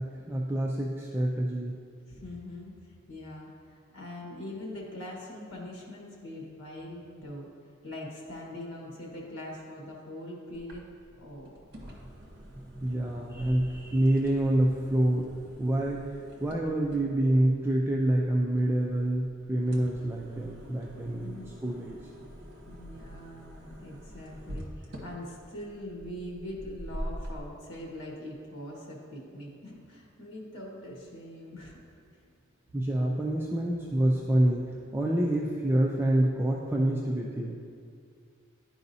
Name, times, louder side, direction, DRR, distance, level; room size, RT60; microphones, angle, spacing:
voice 1, 0.0-1.8 12.8-16.1 16.4-22.0 32.7-37.6, right 1 dB, 10° right, -2 dB, 0.4 m, -27 dB
voice 2, 2.1-2.7 3.1-7.5 7.8-10.9 11.2-11.5 11.8-11.9 21.2-21.5 22.7-31.7, left 1 dB, 85° left, -1 dB, 1.3 m, -42 dB
sound 1, 10.5-27.4, equal, 55° right, 1.1 m, -46 dB
10.5 x 4.8 x 2.7 m, 2.2 s
head